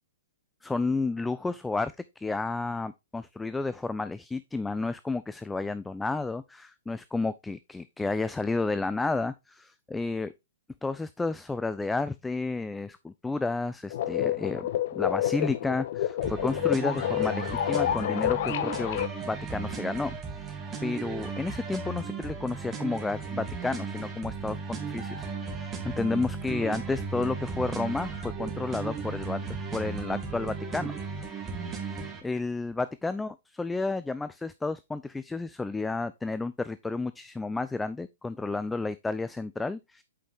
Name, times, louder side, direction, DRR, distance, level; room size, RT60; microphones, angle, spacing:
voice 1, 0.6-10.3 10.8-25.3 25.8-30.9 31.9-40.0, left 3 dB, 5° left, 0.3 m, -31 dB
sound 1, 13.9-19.1, left 12 dB, 50° left, 0.6 m, -29 dB
sound 2, 16.2-32.2, right 5 dB, 15° right, 1.9 m, -36 dB
8.3 x 5.1 x 3.6 m
figure-of-eight pair, 115°, 0 cm